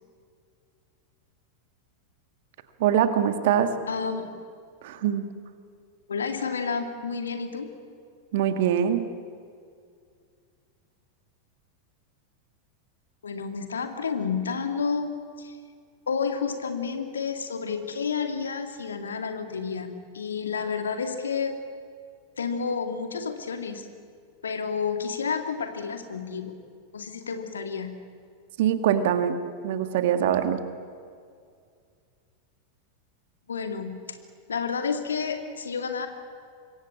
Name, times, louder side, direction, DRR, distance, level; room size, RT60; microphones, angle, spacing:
voice 1, 2.8-3.8 4.8-5.3 8.3-9.1 28.6-30.6, right 9 dB, 55° right, 9 dB, 1.9 m, -23 dB
voice 2, 3.9-4.3 6.1-7.7 13.2-15.1 15.4-15.6 16.1-21.6 22.4-23.9 24.4-26.6 26.9-27.9 33.5-34.0 34.5-36.1, left 5 dB, 70° left, 6 dB, 2.4 m, -30 dB
26.0 x 22.0 x 8.5 m, 2.2 s
figure-of-eight pair, 90°, 0 cm